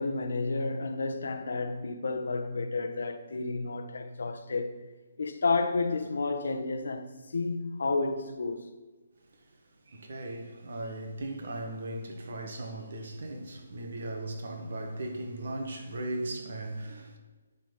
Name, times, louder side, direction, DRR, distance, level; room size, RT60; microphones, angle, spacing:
voice 1, 0.0-4.8 5.2-8.7, left 3 dB, 80° left, 1.0 m, -31 dB
voice 2, 9.9-17.2, right 1 dB, 65° right, 1.7 m, -37 dB
10.5 x 4.2 x 5.4 m
hypercardioid pair, 160°, 0 cm